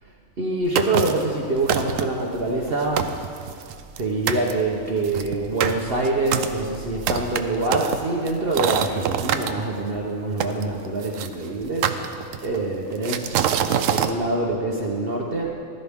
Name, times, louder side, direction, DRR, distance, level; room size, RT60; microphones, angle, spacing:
voice 1, 0.0-3.4 4.0-13.4 13.9-15.5, right 2 dB, 45° right, -1 dB, 1.1 m, -25 dB
sound 1, 0.8-1.3 1.7-2.2 2.7-2.8 3.0-4.0 4.3-4.5 5.0-9.5 10.4-11.3 11.8-12.6 13.0-14.1, right 9 dB, 70° right, 0.9 m, -25 dB
15.0 x 13.0 x 3.6 m, 2.3 s
omnidirectional pair, 1.5 m